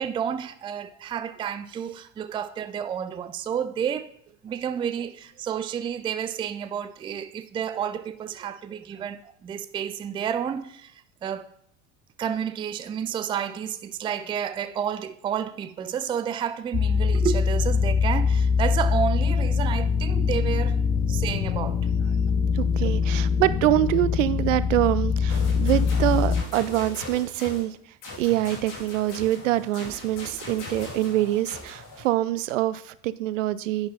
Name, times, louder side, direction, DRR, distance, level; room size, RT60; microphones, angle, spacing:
voice 1, 0.0-4.1 4.4-10.9 11.2-11.5 12.2-20.8 21.1-21.9, right 8 dB, 15° right, 0.4 m, -30 dB
sound 1, 16.7-26.4, left 6 dB, 20° left, 0.7 m, -23 dB
voice 2, 22.5-27.8 28.2-33.9, right 15 dB, 60° right, 0.6 m, -25 dB
sound 2, 25.3-27.7 28.0-32.1, left 2 dB, 45° left, 5.0 m, -39 dB
11.0 x 8.9 x 3.9 m
figure-of-eight pair, 70°, 42 cm